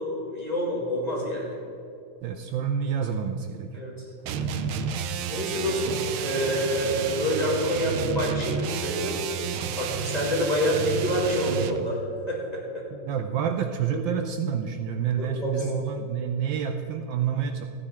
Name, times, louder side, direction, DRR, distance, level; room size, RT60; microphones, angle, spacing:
voice 1, 0.0-1.6 3.7-4.1 5.3-9.2 9.8-12.0 12.3-12.8 13.9-14.0 15.2-15.7, equal, 20° left, -4 dB, 2.4 m, -27 dB
voice 2, 2.2-3.8 12.9-17.6, right 7 dB, 70° right, 6 dB, 1.3 m, -28 dB
sound 1, 4.3-11.9, right 6 dB, 90° right, 1.6 m, -30 dB
14.0 x 9.7 x 4.4 m, 2.7 s
omnidirectional pair, 2.3 m